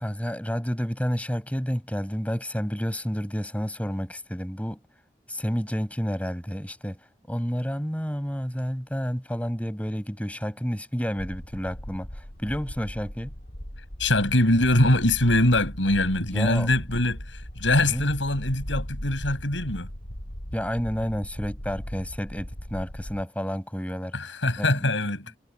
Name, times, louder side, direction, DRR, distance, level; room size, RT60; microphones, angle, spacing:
voice 1, 0.0-4.8 5.3-13.3 16.3-16.7 17.9-18.0 20.5-24.1 24.6-24.9, equal, 10° left, 6.1 m, -30 dB
sound 1, 11.2-23.2, equal, 60° left, 5.2 m, -38 dB
voice 2, 14.0-19.9 24.1-25.4, left 1 dB, 80° left, 7.0 m, -23 dB
head